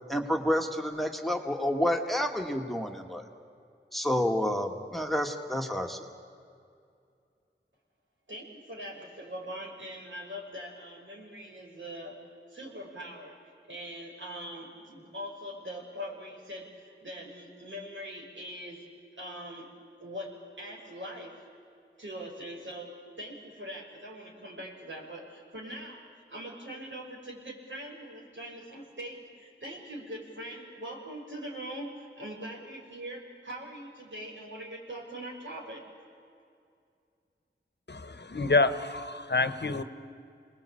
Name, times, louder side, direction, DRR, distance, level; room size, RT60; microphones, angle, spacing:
voice 1, 0.1-3.2 3.9-6.1, left 1 dB, ahead, 4 dB, 2.0 m, -29 dB
voice 2, 8.3-12.1 12.5-13.4 13.7-18.8 19.2-19.7 20.0-21.3 22.0-22.9 23.2-35.8, equal, 70° right, -2 dB, 5.8 m, -42 dB
voice 3, 37.9-39.8, left 3 dB, 60° left, 11 dB, 1.2 m, -27 dB
27.5 x 20.0 x 8.7 m, 2.4 s
wide cardioid pair, 40°, 20 cm